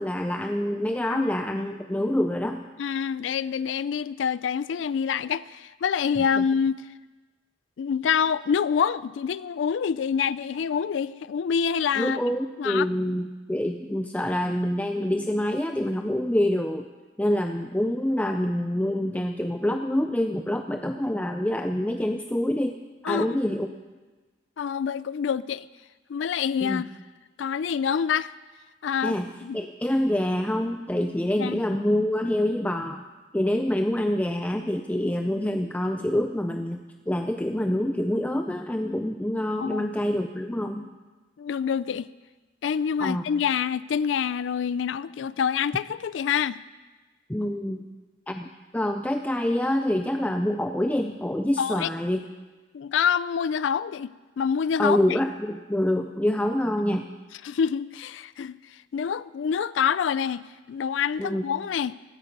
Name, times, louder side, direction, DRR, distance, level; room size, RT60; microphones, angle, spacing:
voice 1, 0.0-2.6 6.4-6.5 12.0-16.9 17.2-22.8 23.1-23.7 26.6-26.8 29.0-33.0 33.3-40.9 43.0-43.2 47.3-47.9 48.3-52.2 54.8-57.1 61.2-61.4, left 1 dB, 10° left, 0.5 m, -26 dB
voice 2, 2.8-6.9 7.8-12.2 12.6-12.9 23.0-23.4 24.6-25.7 26.1-26.9 27.4-28.3 28.8-29.6 31.4-31.6 39.6-39.9 41.4-42.1 42.6-46.6 51.6-51.9 52.7-54.1 54.4-55.0 57.4-61.9, left 7 dB, 80° left, 0.4 m, -26 dB
16.5 x 13.5 x 5.3 m
head